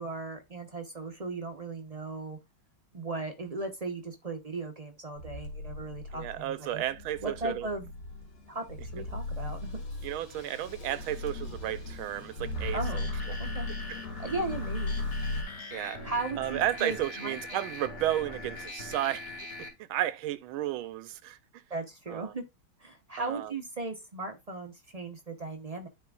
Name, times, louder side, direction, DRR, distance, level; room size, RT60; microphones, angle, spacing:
voice 1, 0.0-2.4 2.9-6.8 7.2-7.9 8.5-9.8 12.7-13.1 13.4-13.7 14.2-14.9 16.0-17.6 21.7-22.4 22.8-25.9, right 3 dB, 65° right, 0.3 m, -37 dB
sound 1, 5.1-15.4, left 2 dB, 85° left, 2.6 m, -37 dB
voice 2, 6.1-7.7 10.0-13.4 13.9-14.0 15.7-16.1 16.4-19.3 19.6-21.6 22.1-22.3 23.2-23.5, right 13 dB, 90° right, 1.5 m, -33 dB
sound 2, 12.5-19.7, left 2 dB, 55° left, 2.3 m, -42 dB
13.0 x 4.4 x 2.4 m
omnidirectional pair, 2.2 m